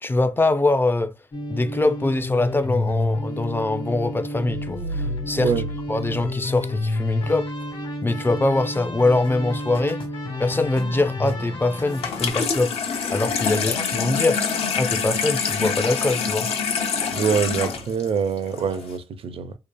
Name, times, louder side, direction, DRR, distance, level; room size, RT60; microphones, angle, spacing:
voice 1, 0.0-1.1 1.5-5.5 5.9-7.5 8.0-10.0 10.4-12.8 13.1-14.4 14.7-16.5, left 2 dB, 20° left, 0.4 m, -23 dB
sound 1, 1.3-12.3, left 2 dB, 50° left, 1.1 m, -30 dB
sound 2, 4.4-7.4, right 1 dB, 80° right, 0.9 m, -33 dB
Water tap faucet / Sink (filling or washing), 11.9-18.9, left 6 dB, 70° left, 0.7 m, -26 dB
voice 2, 17.1-19.6, right 6 dB, 60° right, 0.5 m, -24 dB
2.8 x 2.4 x 2.2 m
supercardioid pair, 50°, 11 cm